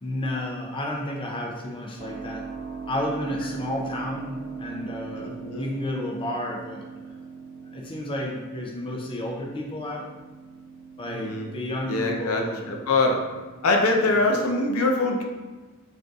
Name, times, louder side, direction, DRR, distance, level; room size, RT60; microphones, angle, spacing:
voice 1, 0.0-2.5 2.9-6.8 7.7-10.1 11.0-12.7, left 1 dB, 25° left, -2 dB, 0.5 m, -31 dB
Keyboard (musical), 2.0-14.5, right 5 dB, 30° right, 1.0 m, -41 dB
voice 2, 5.2-5.6 11.1-11.5 11.9-13.2 13.6-15.2, left 2 dB, 70° left, 2 dB, 0.5 m, -23 dB
3.8 x 2.7 x 3.5 m, 1.3 s
head